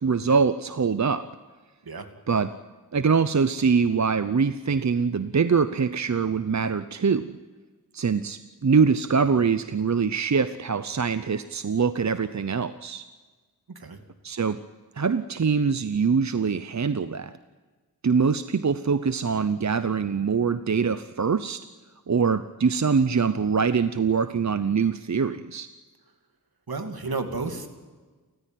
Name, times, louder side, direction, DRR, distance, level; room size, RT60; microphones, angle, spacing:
voice 1, 0.0-1.3 2.3-2.5 2.9-7.3 7.9-13.0 14.2-14.6 15.0-17.3 18.0-21.6 22.1-25.7, right 5 dB, 45° right, 12 dB, 0.8 m, -23 dB
voice 2, 26.7-27.7, right 3 dB, 70° right, 6 dB, 2.6 m, -32 dB
29.5 x 14.5 x 9.2 m, 1.4 s
wide cardioid pair, 75°, 38 cm